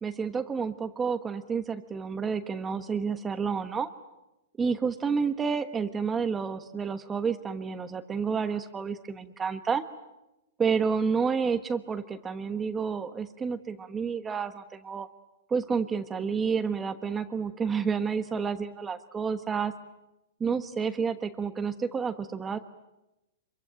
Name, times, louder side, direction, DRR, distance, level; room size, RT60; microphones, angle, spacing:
voice 1, 0.0-3.9 4.6-9.8 10.6-15.1 15.5-19.7 20.4-22.6, right 5 dB, 15° right, 9 dB, 1.2 m, -30 dB
26.0 x 24.0 x 9.2 m, 0.93 s
hypercardioid pair, 145°, 0 cm